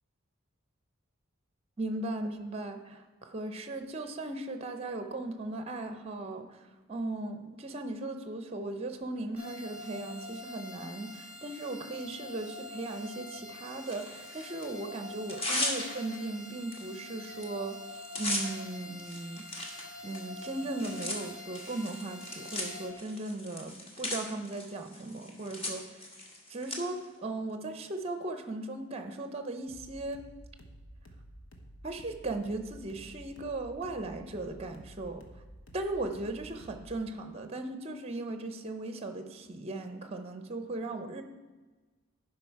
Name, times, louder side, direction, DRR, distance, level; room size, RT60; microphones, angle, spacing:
voice 1, 1.8-17.8 18.2-19.4 20.0-26.0 26.5-30.2 31.8-35.2 35.7-41.2, right 2 dB, 25° right, 7 dB, 0.6 m, -37 dB
sound 1, 9.4-22.9, left 2 dB, 5° right, 2.5 m, -46 dB
Tearing, 13.8-14.7 15.1-16.2 16.7-16.8 17.1-17.5 17.7-26.8, left 1 dB, 25° left, 1.2 m, -38 dB
sound 2, 29.7-37.1, equal, 60° left, 1.0 m, -52 dB
11.5 x 5.1 x 4.6 m, 1.3 s
head